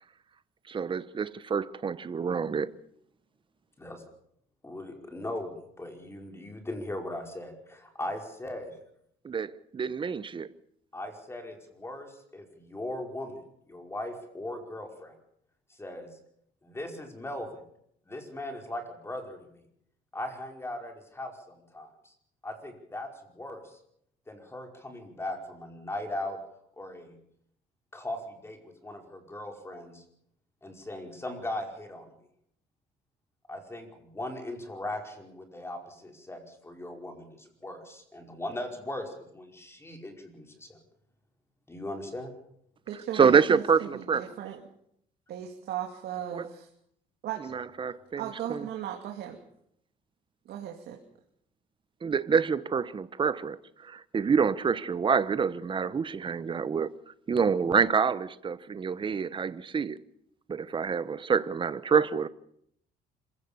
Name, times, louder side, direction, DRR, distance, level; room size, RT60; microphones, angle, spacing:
voice 1, 0.7-2.7 9.2-10.5 43.1-44.3 46.3-46.5 47.4-48.2 48.5-48.7 52.0-56.9 57.3-60.0 60.5-62.3, right 6 dB, 30° right, 1.0 m, -27 dB
voice 2, 4.6-8.7 10.9-13.4 13.7-15.1 15.7-16.1 16.6-17.6 18.1-19.6 20.1-22.1 22.4-23.8 24.3-26.4 26.8-27.2 27.9-30.0 30.6-32.1 33.5-40.8 41.7-42.3, left 1 dB, 15° left, 5.1 m, -39 dB
voice 3, 42.9-44.6 45.3-46.7 47.2-47.6 48.2-49.4 50.5-51.0, right 10 dB, 70° right, 2.7 m, -37 dB
26.5 x 16.0 x 7.0 m
cardioid pair, 110°, 17 cm